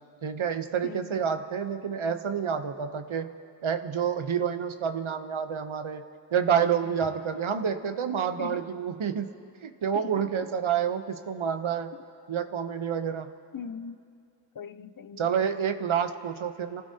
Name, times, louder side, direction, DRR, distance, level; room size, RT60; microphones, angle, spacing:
voice 1, 0.2-3.3 3.6-6.0 6.3-9.3 9.6-11.9 12.3-13.3 15.2-16.8, right 7 dB, 90° right, 9 dB, 0.8 m, -28 dB
voice 2, 0.8-1.2 8.4-8.6 9.9-10.2 13.5-14.0 14.5-15.3, left 6 dB, 45° left, 14 dB, 0.5 m, -40 dB
27.5 x 16.0 x 2.8 m, 2.5 s
wide cardioid pair, 45°, 47 cm